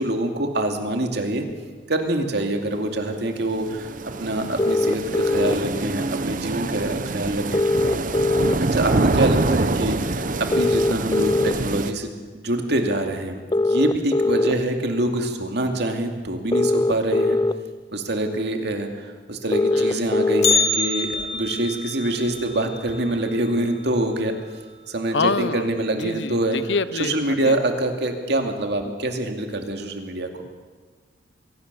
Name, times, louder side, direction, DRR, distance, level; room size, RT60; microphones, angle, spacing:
voice 1, 0.0-1.4 1.9-3.9 4.2-7.6 8.6-17.4 17.9-24.3 24.9-26.6 26.9-30.3, right 1 dB, 60° right, 4 dB, 2.5 m, -25 dB
sound 1, 3.0-11.9, right 2 dB, 45° right, 0.8 m, -25 dB
sound 2, 4.6-5.5 7.5-8.5 10.5-11.5 13.5-14.5 16.5-17.5 19.5-20.5, left 2 dB, 20° left, 0.5 m, -20 dB
voice 2, 19.7-20.1 25.1-25.7 26.0-27.6 30.4-30.5, left 4 dB, 70° left, 15 dB, 0.8 m, -26 dB
Bell, 20.4-24.5 24.8-24.9 25.4-25.5 26.3-26.4 27.1-27.4 27.8-27.9, left 4 dB, 40° left, 2.6 m, -27 dB
23.5 x 17.5 x 6.9 m, 1.5 s
head